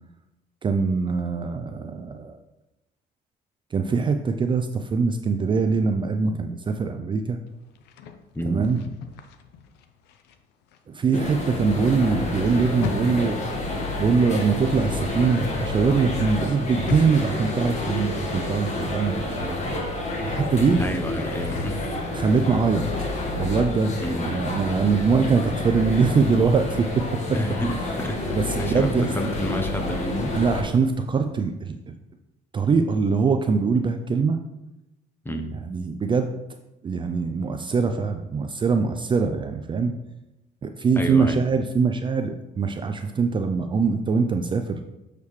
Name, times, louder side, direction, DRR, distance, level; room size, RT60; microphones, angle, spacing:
voice 1, 0.6-2.4 3.7-7.4 8.4-8.8 10.9-13.4 14.0-19.6 20.2-20.8 22.1-22.8 23.4-23.9 24.3-27.4 28.3-29.1 30.3-31.9 32.5-34.4 35.6-36.3 36.8-39.9 40.6-44.8, right 5 dB, 30° right, 6 dB, 0.4 m, -23 dB
sound 1, 7.7-10.4 10.6-15.8 16.1-18.2 18.5-18.6 20.8-23.3, left 7 dB, 85° left, 0.6 m, -38 dB
voice 2, 8.3-8.7 20.8-21.8 22.5-22.6 24.0-24.3 27.3-30.4 35.2-35.5 41.0-41.4, equal, 15° left, 5 dB, 0.9 m, -30 dB
sound 2, 11.1-30.6, left 2 dB, 45° left, 1.5 m, -29 dB
7.1 x 6.6 x 3.2 m, 0.95 s
cardioid pair, 110°, 17 cm